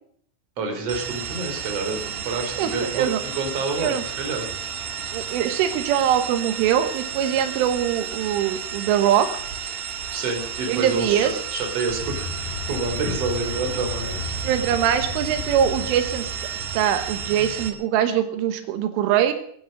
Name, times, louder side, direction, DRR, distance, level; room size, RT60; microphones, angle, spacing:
voice 1, 0.6-4.5 10.1-14.4, right 3 dB, 35° right, 3 dB, 4.1 m, -28 dB
sound 1, 0.9-17.7, right 7 dB, 65° right, 3.2 m, -32 dB
voice 2, 2.6-3.2 3.8-4.0 5.1-9.4 10.7-11.4 14.4-16.3 16.7-19.3, right 10 dB, 85° right, 8 dB, 3.7 m, -22 dB
sound 2, 11.9-16.5, left 4 dB, 60° left, 4.1 m, -34 dB
23.5 x 9.3 x 6.4 m, 0.65 s
omnidirectional pair, 5.5 m